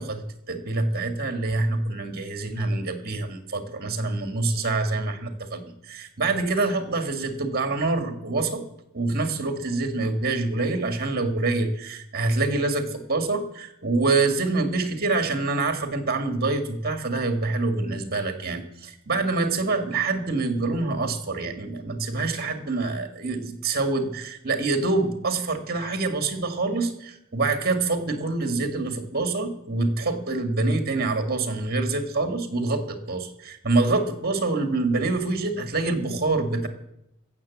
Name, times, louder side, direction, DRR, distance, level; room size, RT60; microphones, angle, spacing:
voice 1, 0.0-8.6 8.9-36.7, right 3 dB, 50° right, 7 dB, 1.7 m, -26 dB
15.5 x 7.2 x 7.1 m, 0.81 s
head